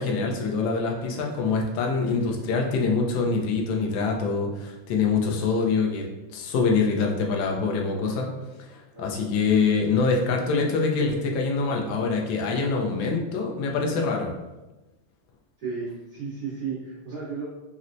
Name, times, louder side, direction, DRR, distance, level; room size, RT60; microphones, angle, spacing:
voice 1, 0.0-6.1 6.3-14.3, left 4 dB, 75° left, 1 dB, 1.2 m, -25 dB
voice 2, 15.6-17.5, right 5 dB, 55° right, -11 dB, 1.4 m, -34 dB
4.2 x 2.0 x 2.5 m, 1.1 s
omnidirectional pair, 2.4 m